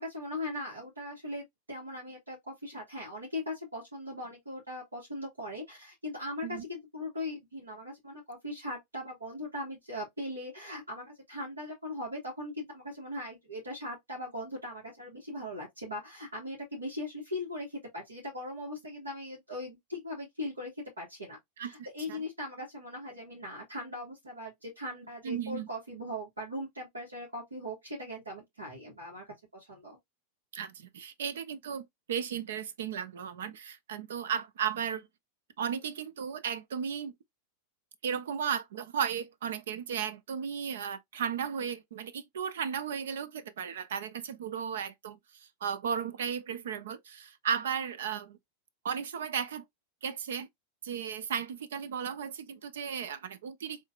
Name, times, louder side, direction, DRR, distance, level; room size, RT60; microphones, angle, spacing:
voice 1, 0.0-21.4 21.6-30.0, left 1 dB, 85° right, 2.5 m, -39 dB
voice 2, 25.2-25.7 30.5-35.1 35.6-37.1 38.0-48.4 48.8-49.6 50.0-50.5 50.8-53.9, right 7 dB, 70° right, 0.7 m, -35 dB
4.6 x 3.4 x 2.4 m
figure-of-eight pair, 90°, 0 cm